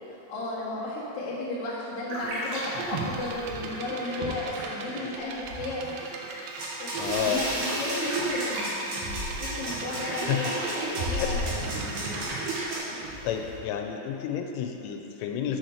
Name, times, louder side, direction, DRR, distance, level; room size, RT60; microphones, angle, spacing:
voice 1, 0.1-6.2 6.8-10.5 10.8-12.2, left 2 dB, 70° left, -8 dB, 1.4 m, -35 dB
sound 1, 2.1-13.6, right 1 dB, 70° right, 2.9 m, -35 dB
sound 2, 2.5-12.4, right 3 dB, 85° right, 2.4 m, -42 dB
sound 3, 6.6-12.8, right 1 dB, 55° right, 2.6 m, -34 dB
voice 2, 7.0-7.4 9.9-10.5 11.1-11.3 13.2-15.6, left 9 dB, 90° left, 4 dB, 3.1 m, -31 dB
7.4 x 6.4 x 4.3 m, 2.9 s
omnidirectional pair, 5.5 m